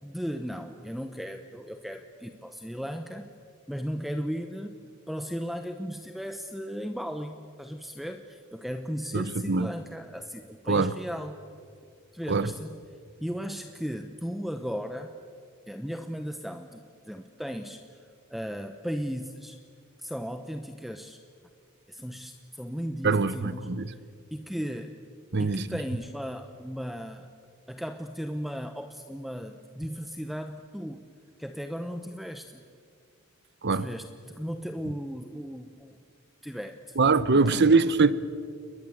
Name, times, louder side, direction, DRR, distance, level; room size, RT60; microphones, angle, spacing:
voice 1, 0.0-3.3 3.7-4.7 5.1-11.4 12.1-12.8 13.2-15.1 15.7-18.0 18.3-19.6 20.0-21.2 21.9-24.0 24.3-25.0 25.4-27.3 27.7-31.0 31.4-32.6 33.8-36.0 36.4-37.0 37.3-37.8, equal, ahead, 0.8 m, -36 dB
voice 2, 9.1-9.7 10.7-10.9 12.3-12.5 23.0-23.8 25.3-25.6 33.6-33.9 37.0-38.1, right 4 dB, 55° right, 0.9 m, -23 dB
29.0 x 21.5 x 7.9 m
head